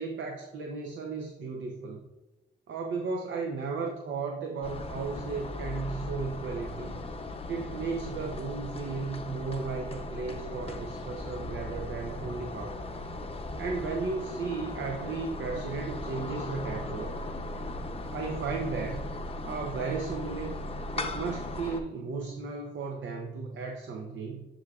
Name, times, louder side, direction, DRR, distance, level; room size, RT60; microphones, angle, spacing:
voice 1, 0.0-2.0 2.7-7.0 7.5-12.8 13.6-17.2 18.0-19.1 19.4-20.6 21.0-24.5, right 4 dB, 85° right, 2 dB, 0.6 m, -35 dB
sound 1, 4.6-21.8, left 2 dB, 30° left, 0.6 m, -38 dB
11.5 x 3.8 x 2.3 m, 1.1 s
cardioid pair, 80°, 19 cm